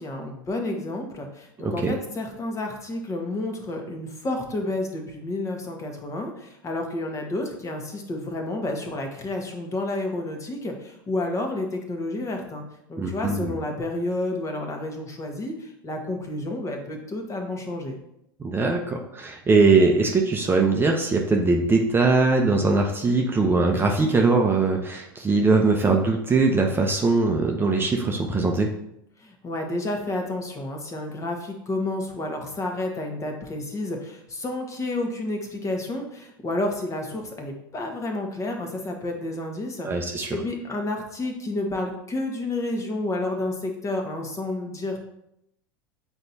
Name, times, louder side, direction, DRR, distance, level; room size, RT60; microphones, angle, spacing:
voice 1, 0.0-12.6 12.9-18.0 29.2-45.0, left 2 dB, 25° left, 2 dB, 1.4 m, -30 dB
voice 2, 1.6-1.9 13.0-13.6 18.4-28.7 39.8-40.4, right 3 dB, 20° right, 1 dB, 0.8 m, -21 dB
7.7 x 4.4 x 2.8 m, 0.80 s
hypercardioid pair, 85°, 12 cm